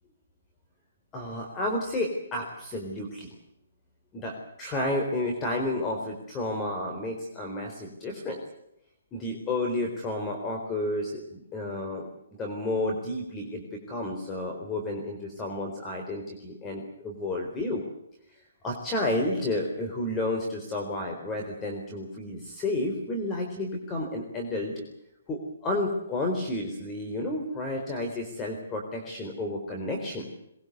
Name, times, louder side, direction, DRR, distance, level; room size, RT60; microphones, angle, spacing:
voice 1, 1.1-3.4 4.1-8.4 9.1-17.8 18.6-24.8 25.3-30.3, left 1 dB, 15° left, 2 dB, 4.1 m, -31 dB
22.5 x 21.5 x 8.1 m, 0.78 s
hypercardioid pair, 155°, 0 cm